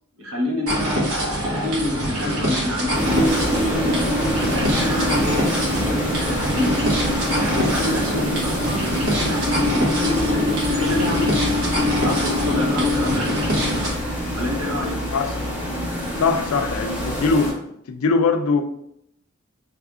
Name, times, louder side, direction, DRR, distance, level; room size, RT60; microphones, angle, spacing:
voice 1, 0.2-3.8 4.4-5.4 6.2-7.0 7.3-11.4 12.0-13.4 14.3-14.9, left 1 dB, 70° right, -1 dB, 1.0 m, -28 dB
sound 1, 0.7-13.9, equal, 85° right, 1.3 m, -25 dB
sound 2, 2.9-17.5, equal, 5° right, 1.1 m, -25 dB
Wind instrument woodwind instrument, 9.4-14.2, left 7 dB, 30° right, 0.4 m, -29 dB
voice 2, 16.2-17.5 17.9-18.6, left 4 dB, 75° left, 7 dB, 0.4 m, -21 dB
3.3 x 2.4 x 3.6 m, 0.73 s
head